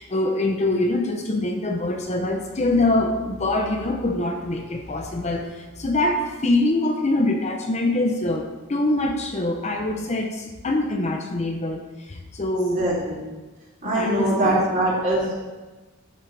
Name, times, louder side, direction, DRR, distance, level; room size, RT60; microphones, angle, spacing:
voice 1, 0.0-12.9 13.8-14.8, left 2 dB, 30° left, 3 dB, 0.7 m, -24 dB
voice 2, 12.7-13.2 13.8-15.3, right 1 dB, 40° right, -6 dB, 3.3 m, -22 dB
12.0 x 7.2 x 3.4 m, 1.2 s
head